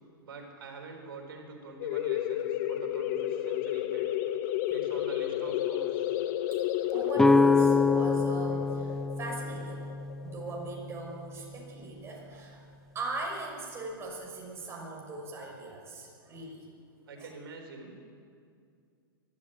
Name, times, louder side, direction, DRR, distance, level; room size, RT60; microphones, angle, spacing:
voice 1, 0.2-4.1 4.7-6.1 17.1-18.0, right 4 dB, 80° right, 3 dB, 4.0 m, -45 dB
sound 1, 1.8-11.1, left 12 dB, 50° left, 1.3 m, -32 dB
voice 2, 6.9-9.9 10.2-12.7 12.9-16.6 17.2-17.3, right 2 dB, 20° right, -1 dB, 5.8 m, -40 dB
sound 2, 7.2-11.0, left 3 dB, 5° left, 0.5 m, -25 dB
23.5 x 12.5 x 8.7 m, 2.3 s
hypercardioid pair, 135°, 12 cm